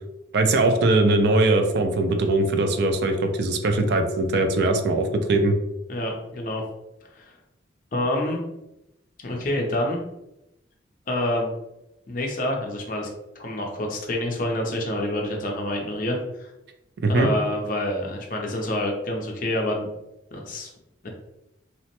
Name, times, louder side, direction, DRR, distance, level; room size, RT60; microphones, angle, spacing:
voice 1, 0.3-5.5 17.0-17.3, right 2 dB, 55° right, 6 dB, 0.3 m, -21 dB
voice 2, 5.9-6.6 7.1-7.3 7.9-8.4 9.2-10.0 11.1-11.5 12.1-13.1 13.4-16.2 17.1-19.9 20.3-20.7 21.0-21.1, left 1 dB, 45° left, 1 dB, 0.5 m, -27 dB
2.9 x 2.1 x 2.9 m, 0.90 s
head